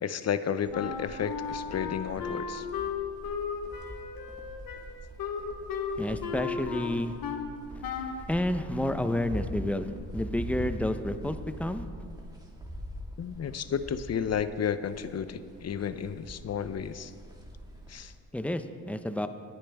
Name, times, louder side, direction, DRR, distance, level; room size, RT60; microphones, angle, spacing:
voice 1, 0.0-2.7 13.2-17.1 17.9-18.1, left 7 dB, 50° left, 12 dB, 0.6 m, -32 dB
sound 1, 0.6-18.2, equal, 10° right, 1.9 m, -43 dB
Wind instrument woodwind instrument, 0.7-7.5 7.8-8.3, left 6 dB, 90° left, 1.1 m, -35 dB
voice 2, 6.0-7.1 7.8-7.9 8.3-11.8 18.3-19.3, left 1 dB, 5° left, 9 dB, 0.6 m, -30 dB
21.5 x 8.8 x 3.5 m, 2.2 s
cardioid pair, 90°, 34 cm